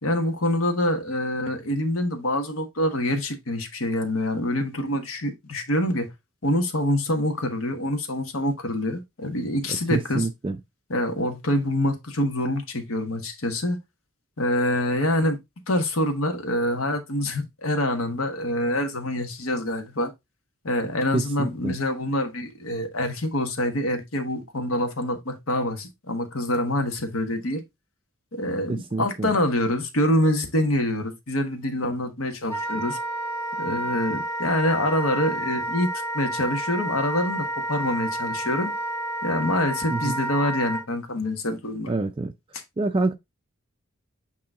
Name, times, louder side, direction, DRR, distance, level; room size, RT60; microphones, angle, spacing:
voice 1, 0.0-6.1 6.4-10.3 10.9-13.8 14.4-15.4 15.7-20.1 20.6-27.6 28.3-33.0 33.6-35.9 36.1-38.7 39.2-41.9, left 1 dB, 70° left, 1.4 m, -26 dB
voice 2, 9.9-10.6 21.1-21.8 28.7-29.3 39.9-40.2 41.9-42.3 42.8-43.1, right 2 dB, 25° right, 0.3 m, -26 dB
Wind instrument woodwind instrument, 32.5-40.8, right 1 dB, 10° left, 1.7 m, -30 dB
8.6 x 3.1 x 3.7 m
head